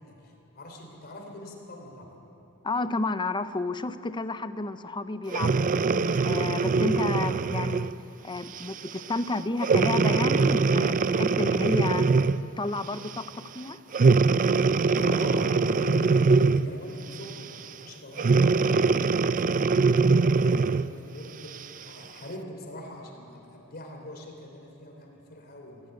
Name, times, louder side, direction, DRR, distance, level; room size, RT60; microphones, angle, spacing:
voice 1, 0.0-2.1 14.9-25.8, left 1 dB, 45° left, 1 dB, 3.3 m, -42 dB
voice 2, 2.6-5.7 6.2-7.9 8.2-12.0 12.6-13.8, left 2 dB, 20° left, 12 dB, 0.6 m, -31 dB
Breathing, 5.3-7.9 8.6-8.8 9.6-12.5 13.9-16.8 18.2-20.9 21.5-21.6, right 4 dB, 35° right, 0.4 m, -22 dB
21.0 x 15.5 x 9.1 m, 3.0 s
head